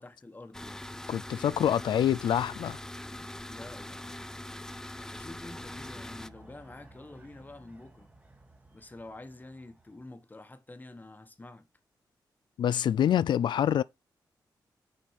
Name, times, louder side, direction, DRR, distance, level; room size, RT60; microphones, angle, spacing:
voice 1, 0.0-0.9 3.5-4.2 5.1-8.1 8.7-11.7, left 2 dB, 20° left, 1.2 m, -48 dB
sound 1, 0.5-6.3, left 1 dB, 5° left, 0.4 m, -42 dB
voice 2, 1.1-2.8 12.6-13.8, left 10 dB, 75° left, 0.4 m, -26 dB
sound 2, 5.2-10.1, right 2 dB, 20° right, 1.5 m, -56 dB
6.3 x 4.3 x 4.7 m
cardioid pair, 75°, 8 cm